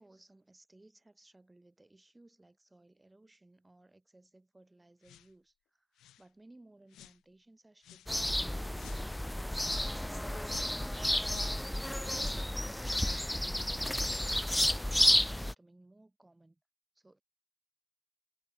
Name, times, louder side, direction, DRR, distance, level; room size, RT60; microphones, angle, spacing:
voice 1, 0.0-11.2 11.6-12.6 13.0-16.6 16.9-17.2, right 2 dB, 15° right, 6.3 m, -61 dB
sound 1, 5.0-5.3 6.0-6.3 6.9-7.2 7.8-8.1 8.7-9.1 9.6-10.0 10.4-10.8 11.3-11.6 12.1-12.4 13.0-13.3 13.9-14.1, left 13 dB, 80° left, 0.6 m, -54 dB
sound 2, 8.1-15.5, left 1 dB, 5° left, 0.4 m, -31 dB
cardioid pair, 90°, 0 cm